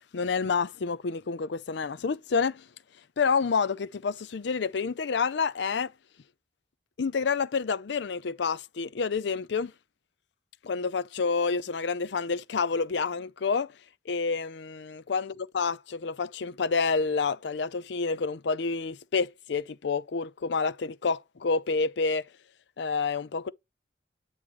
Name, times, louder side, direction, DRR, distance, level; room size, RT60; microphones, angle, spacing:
voice 1, 0.1-2.6 3.2-5.9 7.0-9.7 10.6-13.7 14.1-22.2 22.8-23.5, left 5 dB, 70° left, 0.5 m, -28 dB
8.7 x 3.1 x 4.8 m
head